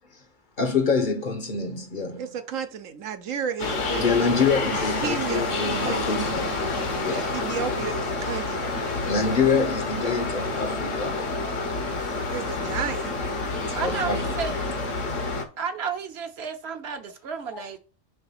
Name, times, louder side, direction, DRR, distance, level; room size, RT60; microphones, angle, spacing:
voice 1, 0.6-2.3 4.0-6.6 7.0-7.3 9.1-11.2 13.4-14.4 15.1-15.3 17.5-17.6, left 5 dB, 45° left, 0.9 m, -26 dB
voice 2, 2.1-4.3 4.7-6.3 7.0-8.8 12.3-13.1, right 7 dB, 75° right, 1.2 m, -33 dB
sound 1, 3.6-15.4, left 3 dB, 70° left, 1.5 m, -28 dB
voice 3, 13.7-14.5 15.6-17.8, right 6 dB, 55° right, 1.1 m, -32 dB
5.5 x 3.3 x 5.5 m
omnidirectional pair, 1.4 m